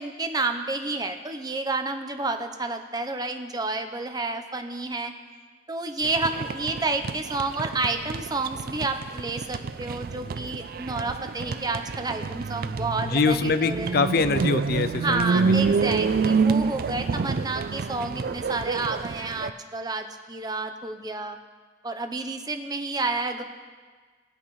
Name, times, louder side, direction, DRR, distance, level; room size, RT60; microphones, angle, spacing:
voice 1, 0.0-5.1 5.7-14.0 15.0-21.4 21.8-23.4, right 3 dB, 20° right, 7 dB, 0.7 m, -30 dB
sound 1, 6.0-19.5, right 5 dB, 50° right, 0.3 m, -28 dB
voice 2, 13.1-15.7, left 4 dB, 55° left, 12 dB, 0.5 m, -24 dB
21.5 x 8.4 x 3.2 m, 1.5 s
head